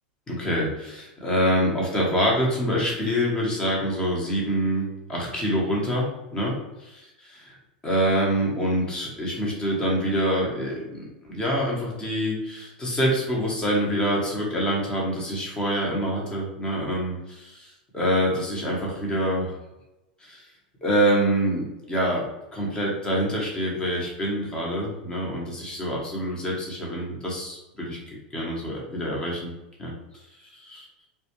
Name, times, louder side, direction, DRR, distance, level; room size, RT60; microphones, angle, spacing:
voice 1, 0.3-6.5 6.8-7.6 7.8-19.5 20.2-20.4 20.8-22.2 22.5-28.0 28.3-29.5 29.8-29.9 30.5-30.8, equal, 15° left, -3 dB, 0.9 m, -26 dB
2.3 x 2.2 x 2.8 m, 0.98 s
hypercardioid pair, 120°, 5 cm